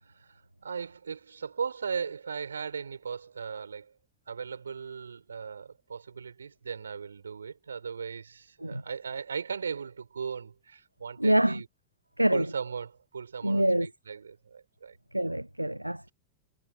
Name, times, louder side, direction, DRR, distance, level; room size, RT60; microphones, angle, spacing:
voice 1, 0.0-4.0 4.3-11.7 12.3-15.0, right 6 dB, 70° right, 5.8 m, -38 dB
voice 2, 11.2-11.6 12.2-12.5 13.4-13.9 15.1-16.1, right 1 dB, 90° right, 0.8 m, -25 dB
figure-of-eight pair, 90°, 0 cm